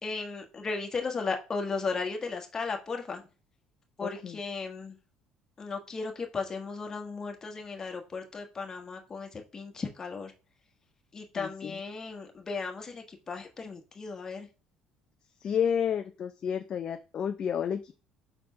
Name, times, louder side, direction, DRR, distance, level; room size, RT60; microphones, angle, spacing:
voice 1, 0.0-3.2 4.0-5.0 5.6-10.3 11.1-14.5, left 4 dB, 25° left, 3 dB, 1.4 m, -35 dB
voice 2, 4.0-4.4 11.4-11.8 15.4-17.9, left 8 dB, 40° left, 8 dB, 0.5 m, -31 dB
4.9 x 4.3 x 5.6 m, 0.33 s
cardioid pair, 125°, 2 cm